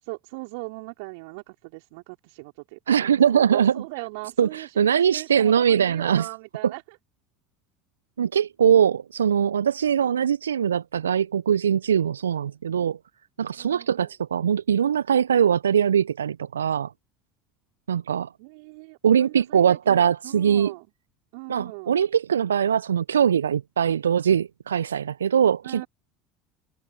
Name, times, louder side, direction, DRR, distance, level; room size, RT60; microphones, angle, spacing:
voice 1, 0.0-7.0 9.9-10.0 13.6-14.1 18.4-20.9 21.3-22.0 25.6-25.9, right 29 dB, 65° right, 4.8 m, -39 dB
voice 2, 2.9-3.8 4.4-6.3 8.2-13.0 13.4-16.9 17.9-18.3 19.0-20.7 21.5-25.8, right 8 dB, 80° right, 0.6 m, -22 dB
figure-of-eight pair, 65°, 0 cm